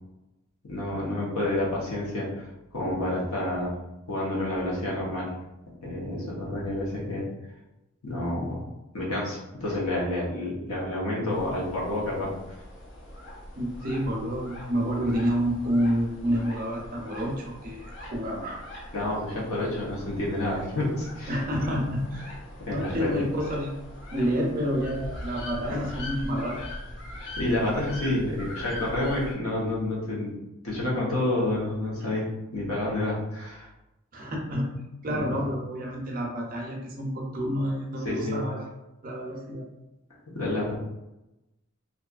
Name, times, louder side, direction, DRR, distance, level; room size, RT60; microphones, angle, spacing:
voice 1, 0.6-2.5 2.7-3.7 4.1-5.3 5.8-7.3 8.0-8.6 8.9-12.3 18.9-21.4 22.7-23.2 27.4-30.3 30.6-33.7 35.1-35.2 38.0-38.4 40.3-40.8, left 1 dB, 80° left, -4 dB, 0.9 m, -29 dB
sound 1, 11.3-29.3, left 1 dB, 55° left, 0.6 m, -41 dB
voice 2, 13.6-18.6 21.3-22.3 22.7-23.7 24.1-26.6 34.1-38.7 39.0-39.7, equal, 40° right, -1 dB, 0.5 m, -29 dB
2.6 x 2.3 x 2.3 m, 0.96 s
head